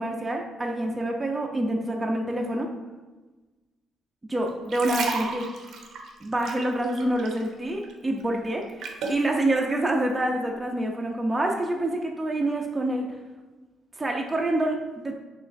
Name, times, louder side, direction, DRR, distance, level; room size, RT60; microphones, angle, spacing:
voice 1, 0.0-2.7 4.3-5.5 6.2-8.7 9.1-13.1 14.0-15.1, right 1 dB, 20° right, 0 dB, 0.5 m, -27 dB
sound 1, 4.5-7.5 7.8-9.2 9.8-10.0, right 4 dB, 75° right, 0.6 m, -33 dB
4.8 x 3.2 x 2.6 m, 1.2 s
cardioid pair, 90°, 0 cm